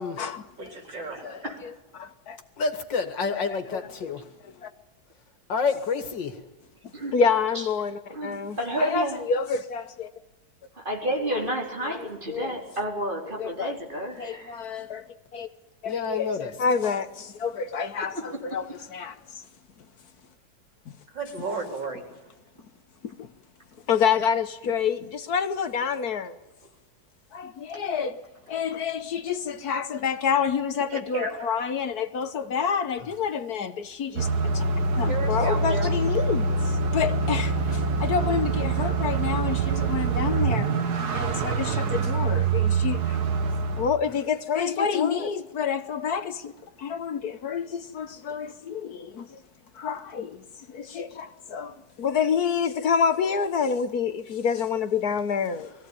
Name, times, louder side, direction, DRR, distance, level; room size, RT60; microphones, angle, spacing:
voice 1, 0.6-1.6 21.1-22.1 30.9-31.5 35.1-35.9, right 2 dB, 90° right, 4.5 m, -33 dB
voice 2, 1.2-2.4 3.3-4.1 4.4-4.7 6.8-10.1 11.3-11.5 11.8-12.5 13.4-13.8 14.2-15.1 15.3-15.5 15.8-19.4 23.0-23.3 23.9-26.4 27.3-34.6 35.0-43.2 43.8-49.4 49.7-55.7, left 6 dB, 60° left, 1.4 m, -28 dB
voice 3, 2.6-4.3 5.5-6.4 15.9-16.5, left 5 dB, 90° left, 2.6 m, -28 dB
voice 4, 8.1-9.2 10.8-14.6, right 1 dB, 25° right, 4.5 m, -30 dB
sound 1, 34.2-44.0, right 4 dB, 65° right, 1.8 m, -25 dB
21.5 x 16.0 x 9.8 m
omnidirectional pair, 1.9 m